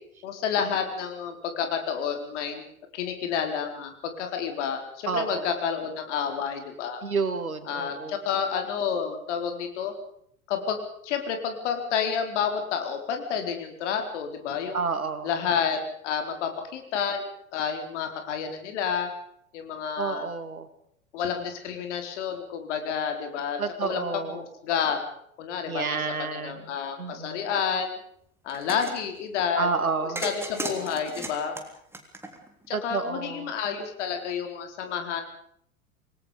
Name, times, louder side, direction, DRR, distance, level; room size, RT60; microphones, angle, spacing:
voice 1, 0.2-2.7 2.9-7.0 7.6-9.9 10.5-14.8 15.2-17.2 17.5-19.1 19.5-20.3 21.1-25.0 25.4-28.0 28.4-31.5 32.7-35.2, left 7 dB, 55° left, 5 dB, 4.4 m, -30 dB
voice 2, 5.1-5.5 7.0-8.2 14.7-15.3 20.0-20.7 23.6-24.4 25.7-26.7 27.0-27.4 29.6-30.2 32.7-33.5, right 4 dB, 75° right, 10 dB, 2.5 m, -30 dB
sound 1, 28.5-29.0 30.2-32.7, right 2 dB, 5° right, 3.3 m, -35 dB
27.5 x 19.5 x 5.2 m, 0.69 s
figure-of-eight pair, 85°, 42 cm